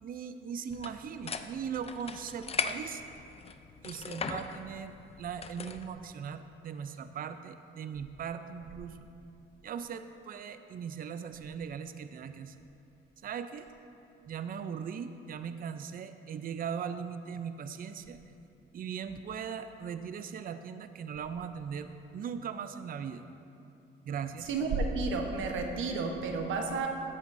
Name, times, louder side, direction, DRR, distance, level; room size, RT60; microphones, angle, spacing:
voice 1, 0.0-3.0 3.8-9.0 9.6-12.5 13.2-13.7 14.3-18.2 18.7-23.2 24.0-24.5, right 7 dB, 45° right, 10 dB, 0.5 m, -39 dB
sound 1, 0.7-5.9, left 5 dB, 30° left, 0.5 m, -39 dB
voice 2, 24.4-26.9, right 4 dB, 80° right, 3 dB, 1.1 m, -31 dB
15.0 x 8.5 x 2.6 m, 2.7 s
cardioid pair, 90°, 20 cm